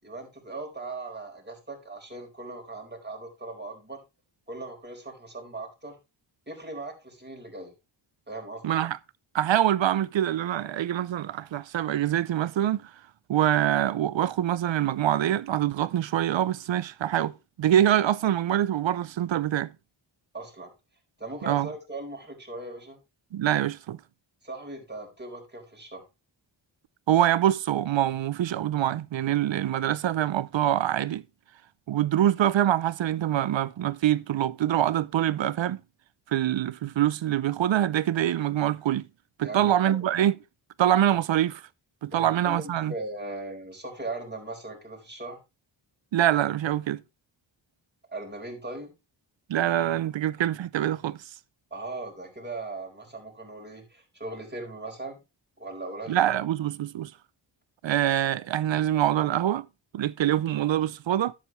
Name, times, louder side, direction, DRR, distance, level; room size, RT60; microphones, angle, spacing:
voice 1, 0.0-4.0 4.5-6.0 6.5-7.7 8.3-8.8 20.3-20.7 21.2-23.0 24.4-26.0 39.4-40.0 42.2-45.4 48.1-48.9 51.7-55.2 55.6-56.4, right 2 dB, 20° right, 4.6 m, -39 dB
voice 2, 8.6-9.0 9.3-12.9 13.3-19.7 21.5-21.7 23.3-24.0 27.1-31.2 31.9-35.8 36.3-39.1 39.4-40.3 40.8-41.6 42.0-42.9 46.1-47.0 49.5-51.2 56.1-57.1 57.8-59.7 59.9-61.3, right 11 dB, 65° right, 0.6 m, -25 dB
11.0 x 8.6 x 3.2 m
cardioid pair, 60°, 49 cm